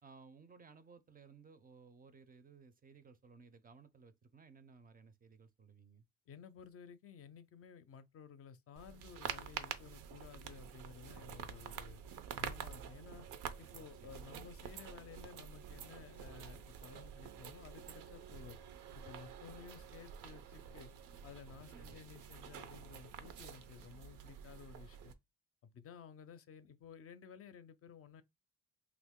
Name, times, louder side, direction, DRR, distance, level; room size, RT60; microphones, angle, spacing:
voice 1, 0.0-6.1 14.0-14.2 21.7-22.0, right 5 dB, 30° right, 0.4 m, -59 dB
voice 2, 6.3-12.0 12.3-13.3 13.6-18.6 18.9-20.9 21.2-25.2 25.6-28.2, left 7 dB, 50° left, 0.4 m, -55 dB
sound 1, 8.8-25.1, right 8 dB, 90° right, 0.6 m, -48 dB
2.9 x 2.5 x 3.5 m
cardioid pair, 90°, 30 cm